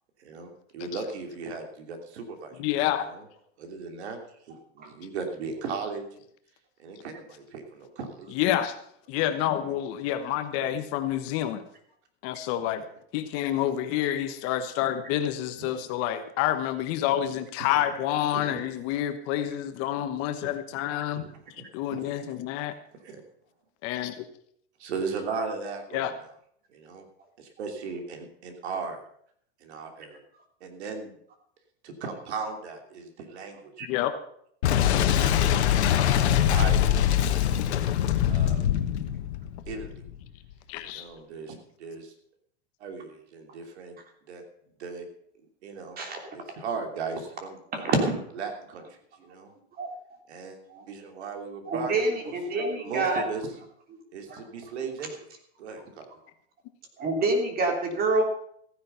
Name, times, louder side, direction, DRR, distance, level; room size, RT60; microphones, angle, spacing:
voice 1, 0.2-3.2 3.6-4.2 4.5-6.2 6.8-8.6 9.6-9.8 10.6-10.8 13.5-13.6 15.6-15.8 17.7-17.8 18.3-18.6 20.4-20.8 21.1-21.6 21.9-22.1 23.0-23.2 24.8-26.3 26.7-27.1 27.4-29.0 29.6-30.2 30.6-31.2 31.8-33.7 34.9-35.9 36.5-36.8 37.3-37.7 38.3-38.6 39.7-39.9 40.8-42.1 42.8-44.0 44.3-44.4 44.8-45.1 45.6-46.0 46.3-47.9 48.4-49.5 50.3-50.6 50.9-53.5 54.1-55.2 55.6-56.1, right 4 dB, 85° right, 5 dB, 3.2 m, -37 dB
voice 2, 2.6-3.1 8.4-8.7 9.1-11.6 12.2-12.8 13.1-21.2 21.7-22.7 23.8-24.3 25.9-26.1 33.9-34.1 40.7-41.0, left 12 dB, 45° left, 9 dB, 1.1 m, -28 dB
Boom, 34.6-40.2, left 10 dB, 90° left, 1.4 m, -23 dB
voice 3, 47.7-48.2 49.8-49.9 50.7-50.8 51.7-53.2 54.3-54.4 57.0-58.2, right 2 dB, 30° right, 3 dB, 3.2 m, -26 dB
15.0 x 10.0 x 5.7 m, 0.67 s
supercardioid pair, 135°, 32 cm